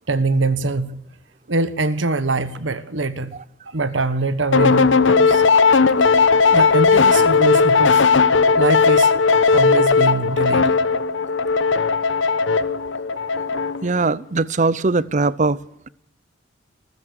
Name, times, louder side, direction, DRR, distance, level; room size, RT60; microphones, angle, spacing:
voice 1, 0.1-1.0 1.5-3.3 3.7-5.4 6.0-6.1 6.5-8.0 8.5-9.1 9.5-10.8 12.6-12.7, right 3 dB, 80° right, 1.3 m, -23 dB
sound 1, 4.5-13.9, left 4 dB, 80° left, 1.0 m, -16 dB
voice 2, 13.8-15.6, right 3 dB, 40° right, 0.7 m, -20 dB
29.0 x 13.5 x 6.6 m
head